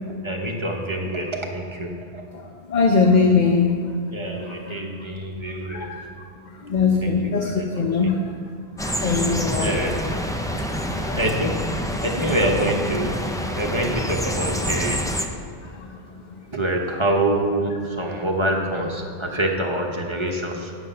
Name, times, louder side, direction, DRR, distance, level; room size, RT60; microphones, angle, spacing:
voice 1, 0.2-2.2 4.1-5.9 7.0-8.1 9.6-10.1 11.1-13.3 13.6-15.0 16.5-20.7, right 1 dB, 25° right, 0 dB, 1.1 m, -26 dB
voice 2, 2.7-3.7 5.7-6.0 6.6-8.2 8.8-9.7 11.0-11.2, left 5 dB, 45° left, 1 dB, 0.8 m, -20 dB
sound 1, 8.8-15.3, equal, 5° left, 0.4 m, -27 dB
9.9 x 7.9 x 5.6 m, 2.1 s
omnidirectional pair, 1.1 m